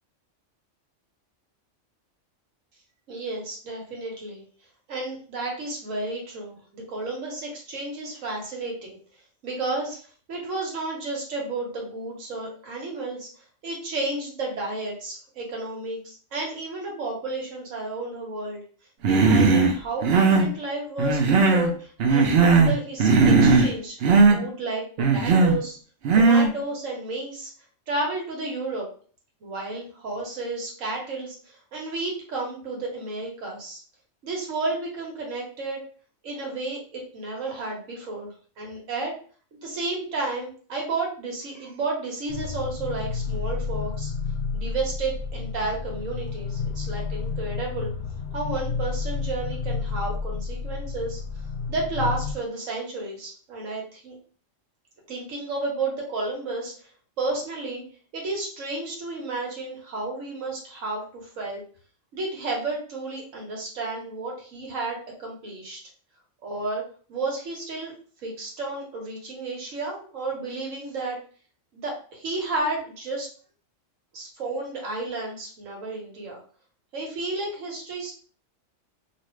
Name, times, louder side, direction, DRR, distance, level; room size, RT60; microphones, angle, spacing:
voice 1, 3.1-4.4 4.9-8.9 9.4-10.0 10.3-18.6 19.1-24.0 24.3-25.8 26.1-27.5 27.9-28.9 29.4-33.8 34.2-35.8 36.2-39.1 39.5-44.1 44.5-47.9 48.3-51.2 51.7-54.2 55.1-56.7 57.2-57.8 58.1-61.6 62.1-65.8 66.4-66.8 67.1-67.9 68.2-71.2 71.7-73.3 74.1-76.4 76.9-78.1, right 2 dB, 90° right, -1 dB, 1.4 m, -32 dB
Human voice, 19.0-19.7 20.0-20.5 21.0-21.7 22.0-22.7 23.0-23.7 24.0-24.4 25.0-25.6 26.0-26.5, right 4 dB, 60° right, 0.8 m, -17 dB
sound 1, 42.3-52.3, left 5 dB, 65° left, 0.8 m, -31 dB
2.6 x 2.5 x 3.1 m, 0.43 s
omnidirectional pair, 1.3 m